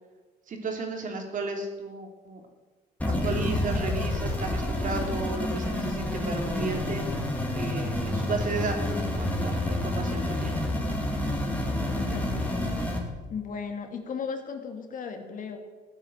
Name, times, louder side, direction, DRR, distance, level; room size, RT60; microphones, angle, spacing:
voice 1, 0.5-2.4 3.2-7.0 7.5-10.6, right 3 dB, 50° right, 3 dB, 3.5 m, -34 dB
sound 1, 3.0-13.0, left 1 dB, 10° left, 3.5 m, -29 dB
voice 2, 11.7-12.7 13.3-15.6, left 5 dB, 50° left, 5 dB, 2.5 m, -36 dB
15.5 x 9.9 x 8.1 m, 1.2 s
cardioid pair, 110°, 17 cm